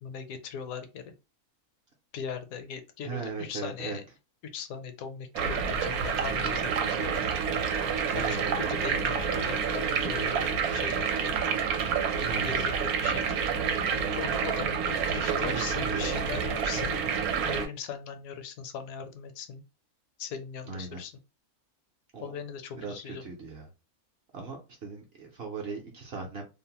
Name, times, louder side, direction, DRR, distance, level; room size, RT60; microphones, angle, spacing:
voice 1, 0.0-1.1 2.1-4.0 4.4-7.3 8.1-11.3 12.4-12.7 13.0-13.2 13.8-17.0 17.4-19.6 20.2-21.1 22.2-23.2, left 7 dB, 75° left, 8 dB, 1.0 m, -39 dB
voice 2, 3.0-4.0 8.1-9.0 12.2-12.7 13.0-13.3 15.1-16.0 20.7-21.0 22.1-22.3 22.8-23.7 24.3-26.5, right 4 dB, 55° right, 0 dB, 0.7 m, -38 dB
sound 1, 5.4-17.7, right 6 dB, 80° right, 1.0 m, -28 dB
2.6 x 2.0 x 2.8 m, 0.29 s
omnidirectional pair, 1.6 m